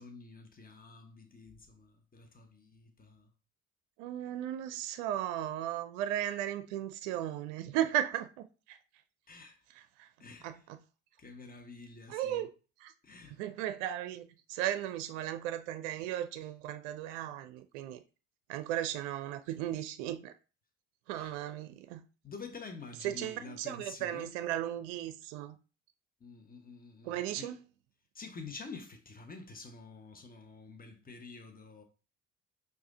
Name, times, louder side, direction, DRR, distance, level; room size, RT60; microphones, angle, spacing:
voice 1, 0.0-3.3 9.3-9.6 10.2-10.5 11.2-12.5 13.0-13.4 21.2-21.3 22.2-24.3 26.2-27.5 28.1-31.8, left 4 dB, 25° left, 1.1 m, -48 dB
voice 2, 4.0-8.8 9.7-10.1 10.4-10.8 12.1-12.5 12.8-12.9 13.3-18.0 18.5-20.3 21.1-22.0 23.0-25.6 27.0-27.6, right 12 dB, 65° right, 0.5 m, -36 dB
4.8 x 2.6 x 3.8 m
figure-of-eight pair, 50°, 38 cm